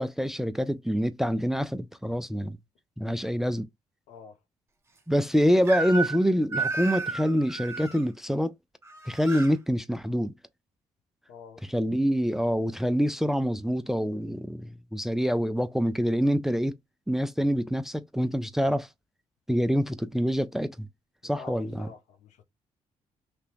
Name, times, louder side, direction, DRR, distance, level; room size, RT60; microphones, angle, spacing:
voice 1, 0.0-2.6 3.0-3.7 5.1-8.5 9.1-10.3 11.6-16.8 17.1-18.9 19.5-20.9 21.2-21.9, equal, 5° right, 0.3 m, -26 dB
Crying sobbing / Screech, 5.7-6.2 6.5-8.0 8.8-9.5, right 4 dB, 20° right, 0.9 m, -32 dB
voice 2, 11.3-11.6 21.2-22.4, left 6 dB, 85° left, 0.7 m, -47 dB
2.9 x 2.2 x 3.3 m
cardioid pair, 90°, 12 cm